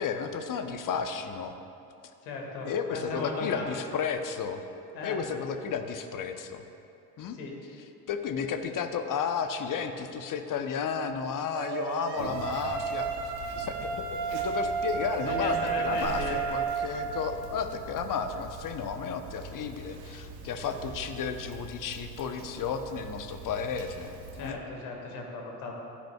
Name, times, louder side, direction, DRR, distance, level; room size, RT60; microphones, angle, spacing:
voice 1, 0.0-1.6 2.6-4.6 5.0-6.6 7.2-7.4 8.1-14.0 14.3-24.6, left 6 dB, 40° left, 8 dB, 0.9 m, -33 dB
voice 2, 2.2-3.8 4.9-5.2 7.3-7.5 15.2-16.4 24.3-25.7, left 3 dB, 70° left, 0 dB, 2.1 m, -36 dB
sound 1, 11.5-17.3, right 6 dB, 50° right, 1.3 m, -32 dB
Conversation, 12.2-24.5, right 4 dB, 80° right, 1.1 m, -44 dB
15.5 x 8.4 x 2.4 m, 2.7 s
hypercardioid pair, 60°, 49 cm